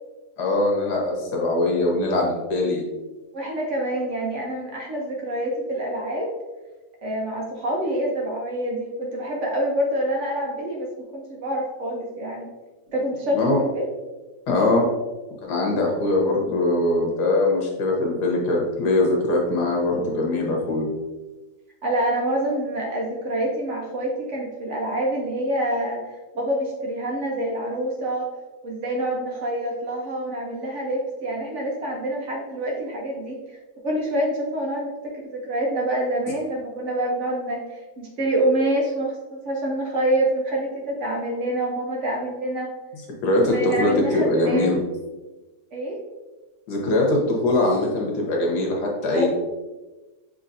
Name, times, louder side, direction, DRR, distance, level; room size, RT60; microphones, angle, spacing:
voice 1, 0.4-2.8 13.3-13.6 14.5-14.9 15.4-20.9 43.2-44.8 46.7-49.3, left 2 dB, 80° left, -1 dB, 1.6 m, -22 dB
voice 2, 3.3-6.3 7.0-12.5 12.9-13.9 21.8-26.0 26.3-28.3 28.6-33.4 33.8-42.7 43.5-44.7 45.7-46.0 49.1-49.3, right 1 dB, 55° right, -1 dB, 1.0 m, -26 dB
6.5 x 3.2 x 2.6 m, 1.2 s
omnidirectional pair, 1.7 m